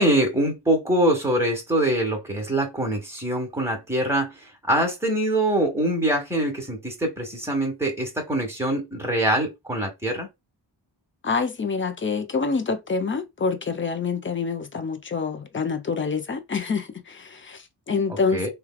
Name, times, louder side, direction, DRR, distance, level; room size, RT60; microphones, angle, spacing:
voice 1, 0.0-4.3 4.7-10.3 18.3-18.5, right 1 dB, 5° right, 1.4 m, -24 dB
voice 2, 11.2-18.5, left 5 dB, 25° left, 0.6 m, -27 dB
3.2 x 2.4 x 2.3 m
cardioid pair, 55°, 45 cm